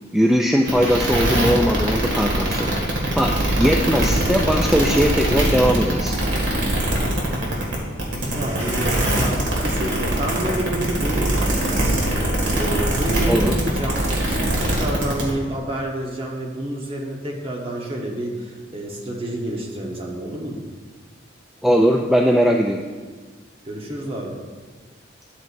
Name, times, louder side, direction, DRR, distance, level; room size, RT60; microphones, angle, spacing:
voice 1, 0.1-2.7 3.1-6.1 13.3-13.5 21.6-22.9, equal, ahead, 0 dB, 0.3 m, -19 dB
sound 1, 0.6-15.3, right 1 dB, 70° right, 2.0 m, -22 dB
voice 2, 8.3-12.0 12.5-20.6 23.6-24.4, right 1 dB, 30° right, -1 dB, 1.2 m, -29 dB
11.0 x 8.1 x 2.6 m, 1.4 s
head